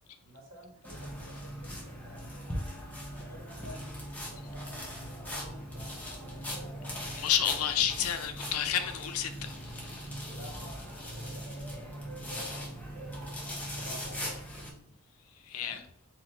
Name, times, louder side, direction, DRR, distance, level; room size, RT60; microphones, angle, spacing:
voice 1, 0.2-2.4 3.1-7.3 10.2-13.2 13.5-15.0 15.5-15.9, equal, 80° right, 1.5 m, -53 dB
sound 1, 0.8-14.7, equal, 5° left, 1.0 m, -40 dB
voice 2, 7.2-9.5 15.5-15.8, left 10 dB, 85° left, 0.5 m, -30 dB
4.1 x 2.8 x 4.4 m
head